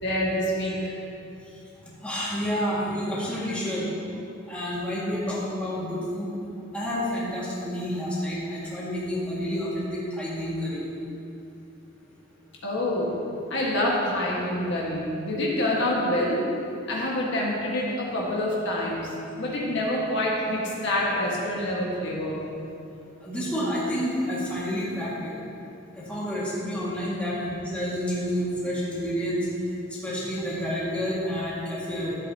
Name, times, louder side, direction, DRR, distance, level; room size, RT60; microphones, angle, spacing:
voice 1, 0.0-0.9 12.6-13.1 13.5-16.4 16.9-19.1 19.4-22.4, left 1 dB, 60° left, -4 dB, 1.6 m, -26 dB
voice 2, 2.0-3.8 4.5-6.3 6.7-10.8 23.2-25.3 26.0-29.4 30.0-32.2, equal, 5° left, -8 dB, 1.9 m, -29 dB
13.0 x 8.0 x 2.8 m, 2.7 s
head